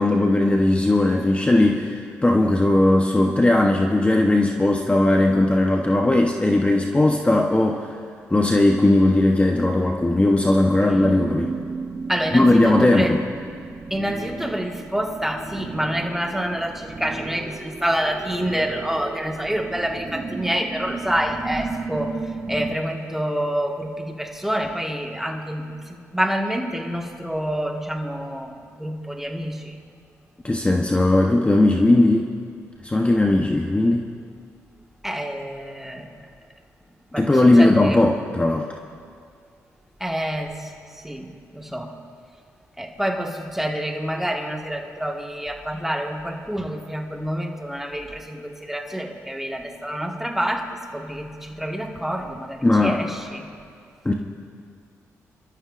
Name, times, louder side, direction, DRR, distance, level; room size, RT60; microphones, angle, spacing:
voice 1, 0.0-7.9 8.3-11.5 12.3-13.2 30.4-32.3 32.8-34.1 37.1-38.7 52.6-53.0 54.0-54.1, left 2 dB, 20° left, 1 dB, 0.9 m, -18 dB
sound 1, 10.8-22.8, right 4 dB, 40° right, 1.3 m, -34 dB
voice 2, 12.1-13.1 13.9-22.2 22.5-29.7 35.0-36.1 37.1-37.3 37.6-38.1 40.0-40.7 41.0-41.9 42.8-50.7 50.9-53.5, equal, 5° right, 1 dB, 1.7 m, -27 dB
26.0 x 13.0 x 2.5 m, 2.2 s
cardioid pair, 60°, 6 cm